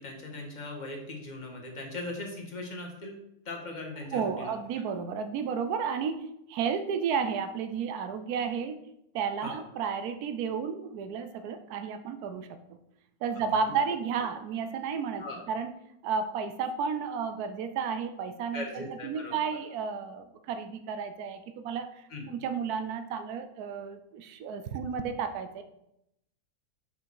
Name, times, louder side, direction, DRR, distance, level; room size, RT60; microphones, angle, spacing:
voice 1, 0.0-3.2 3.4-4.5 9.4-9.6 13.3-13.4 15.2-15.4 18.5-19.4 22.1-22.3, left 2 dB, 30° left, 1 dB, 1.6 m, -39 dB
voice 2, 4.1-8.8 9.1-12.6 13.2-15.7 16.0-25.6, right 6 dB, 75° right, 9 dB, 1.2 m, -32 dB
6.8 x 5.9 x 4.6 m, 0.80 s
omnidirectional pair, 1.6 m